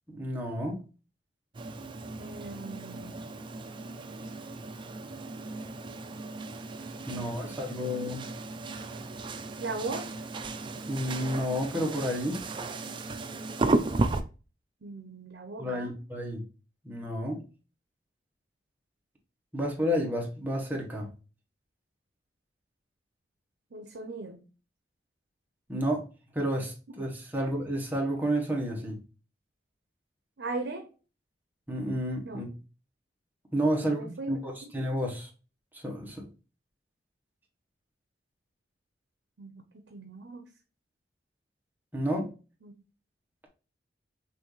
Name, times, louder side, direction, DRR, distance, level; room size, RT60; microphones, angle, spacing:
voice 1, 0.1-0.8 7.1-8.2 10.9-12.4 15.6-16.4 16.8-17.4 19.5-21.1 25.7-26.0 26.3-29.0 31.7-32.5 33.5-35.3 35.7-36.3 41.9-42.3, equal, 10° right, 1.1 m, -31 dB
sound 1, 1.5-14.2, right 2 dB, 30° right, 0.4 m, -35 dB
voice 2, 2.2-3.2 9.6-10.2 14.8-16.0 23.7-24.4 30.4-30.9 32.2-32.4 33.8-34.7 39.4-40.5 42.6-42.7, right 3 dB, 75° right, 0.7 m, -39 dB
5.9 x 2.6 x 3.1 m
head